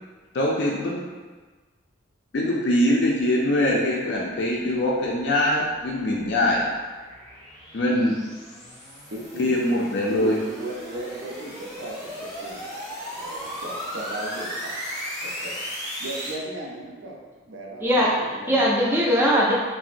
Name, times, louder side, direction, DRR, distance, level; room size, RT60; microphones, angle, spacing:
voice 1, 0.3-1.0 2.3-6.6 7.7-8.1 9.4-10.4, left 1 dB, 60° left, -3 dB, 0.4 m, -22 dB
sound 1, 5.0-16.3, equal, 20° left, 0.8 m, -36 dB
voice 2, 9.1-9.8 10.2-12.6 13.2-14.7 15.2-15.6 16.0-17.2 17.4-18.0 18.4-18.9, right 2 dB, 75° right, -2 dB, 0.5 m, -36 dB
voice 3, 17.8-19.5, equal, 10° right, -4 dB, 0.4 m, -20 dB
3.7 x 2.0 x 2.5 m, 1.4 s
head